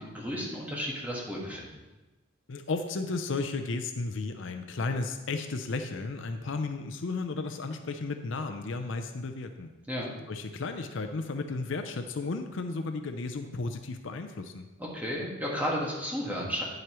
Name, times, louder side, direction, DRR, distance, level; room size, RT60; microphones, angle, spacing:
voice 1, 0.0-1.7 9.9-10.1 14.8-16.6, equal, 10° right, -4 dB, 1.6 m, -33 dB
voice 2, 2.5-9.7 10.3-14.7, left 3 dB, 65° left, 7 dB, 0.6 m, -34 dB
9.5 x 7.9 x 3.0 m, 1.1 s
head